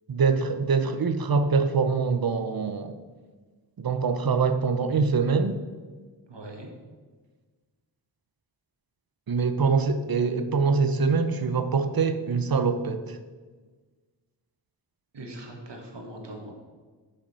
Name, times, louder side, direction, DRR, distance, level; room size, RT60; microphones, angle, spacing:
voice 1, 0.1-2.9 3.8-5.6 9.3-13.2, right 5 dB, 50° right, 9 dB, 0.8 m, -24 dB
voice 2, 6.3-6.7 15.1-16.5, right 1 dB, 65° right, 1 dB, 1.8 m, -41 dB
8.5 x 5.7 x 5.6 m, 1.4 s
wide cardioid pair, 80°, 45 cm